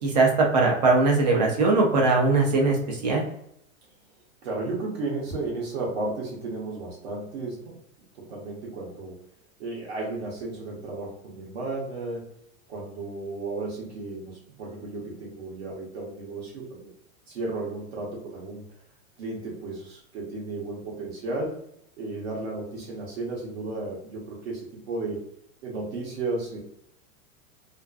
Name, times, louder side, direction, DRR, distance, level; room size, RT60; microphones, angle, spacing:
voice 1, 0.0-3.2, right 3 dB, 35° right, -1 dB, 0.4 m, -21 dB
voice 2, 4.4-7.8 8.1-9.2 9.6-12.3 12.7-16.9 17.3-18.6 19.2-21.6 22.0-25.2 25.6-26.6, right 2 dB, 50° right, -3 dB, 0.8 m, -34 dB
2.4 x 2.4 x 2.3 m, 0.75 s
supercardioid pair, 170°, 42 cm